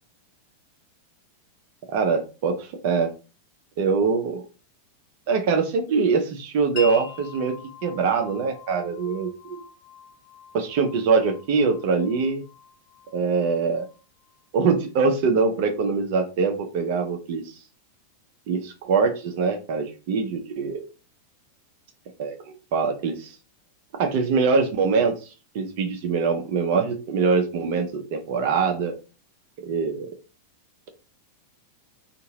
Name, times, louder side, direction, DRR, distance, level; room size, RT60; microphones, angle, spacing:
voice 1, 1.9-3.1 3.8-4.4 5.3-7.5 7.8-9.6 10.5-12.4 13.1-13.9 14.5-17.4 18.5-20.8 22.2-23.3 23.9-25.2 25.5-29.0 29.6-30.2, right 5 dB, 50° right, 4 dB, 0.6 m, -23 dB
Wind chime, 6.8-14.4, left 3 dB, 45° left, 0.8 m, -42 dB
2.7 x 2.5 x 2.9 m, 0.32 s
figure-of-eight pair, 90°, 0 cm